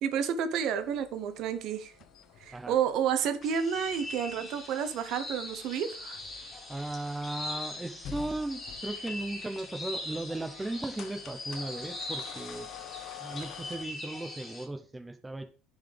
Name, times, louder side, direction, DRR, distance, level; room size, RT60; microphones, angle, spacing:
voice 1, 0.0-1.9 2.4-6.2, right 8 dB, 65° right, 0.8 m, -30 dB
sound 1, 0.8-13.9, left 7 dB, 55° left, 0.8 m, -49 dB
sound 2, 3.4-14.7, left 2 dB, 25° left, 2.3 m, -41 dB
voice 2, 6.7-12.7 13.2-15.4, right 2 dB, 10° right, 0.7 m, -36 dB
10.5 x 4.0 x 3.4 m
supercardioid pair, 110°, 0 cm